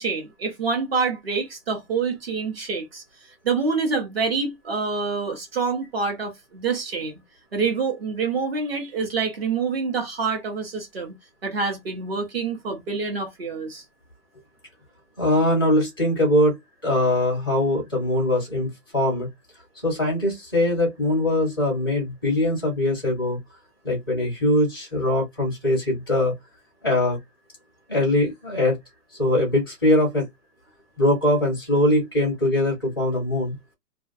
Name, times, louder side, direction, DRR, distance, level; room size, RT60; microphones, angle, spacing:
voice 1, 0.0-3.0 3.4-7.2 7.5-11.1 11.4-13.8, right 4 dB, 40° right, 0.8 m, -26 dB
voice 2, 15.2-16.6 16.8-19.3 19.8-23.4 23.8-26.3 26.8-27.2 27.9-28.8 29.2-30.3 31.0-33.5, left 1 dB, 15° left, 0.6 m, -22 dB
2.4 x 2.2 x 2.6 m
hypercardioid pair, 160°, 48 cm